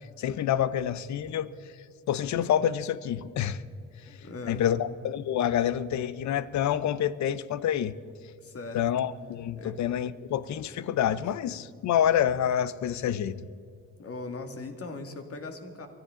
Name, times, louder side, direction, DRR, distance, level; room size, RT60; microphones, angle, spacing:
voice 1, 0.2-1.5 2.1-3.6 4.5-8.0 8.7-13.4, left 10 dB, 65° left, 17 dB, 0.7 m, -27 dB
voice 2, 4.1-4.8 8.4-8.8 9.6-9.8 14.0-15.9, left 3 dB, 50° left, 5 dB, 2.2 m, -39 dB
23.5 x 13.5 x 3.8 m, 2.2 s
cardioid pair, 90°, 30 cm